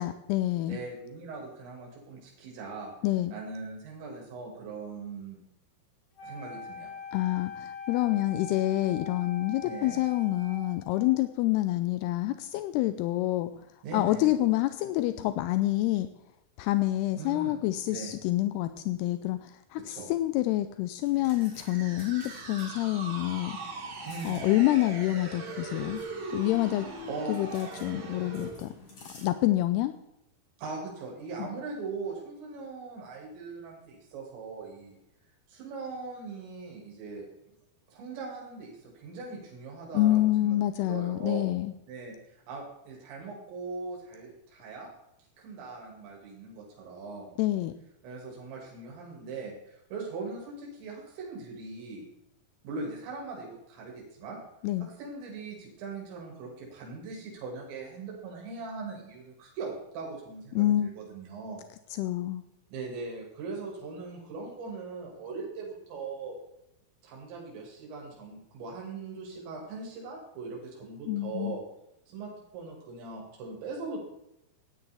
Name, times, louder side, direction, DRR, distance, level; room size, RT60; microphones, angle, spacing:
voice 1, 0.0-0.8 3.0-3.3 7.1-13.5 13.9-16.1 16.6-23.6 24.0-26.0 26.3-26.9 27.3-28.7 29.2-29.9 31.4-31.5 39.9-41.7 47.4-47.7 54.6-54.9 60.5-60.9 61.9-62.4 71.1-71.6, left 15 dB, 85° left, 11 dB, 2.4 m, -27 dB
voice 2, 0.7-2.9 3.3-5.4 6.2-6.9 9.6-10.0 13.8-14.3 17.2-17.6 17.9-18.1 19.8-20.1 24.1-24.5 27.1-27.3 30.6-35.0 35.5-37.3 37.9-40.6 40.8-41.5 41.9-44.9 45.4-47.4 48.0-52.1 52.6-54.4 54.8-61.6 62.7-66.4 67.0-71.6 72.1-74.0, right 4 dB, 80° right, -2 dB, 4.5 m, -40 dB
Wind instrument woodwind instrument, 6.2-11.3, left 4 dB, 60° left, 3.6 m, -42 dB
sound 1, 21.0-29.3, left 2 dB, 40° left, 4.1 m, -52 dB
sound 2, 21.2-28.6, right 3 dB, 45° right, 1.7 m, -40 dB
15.5 x 10.0 x 3.4 m, 0.85 s
omnidirectional pair, 5.1 m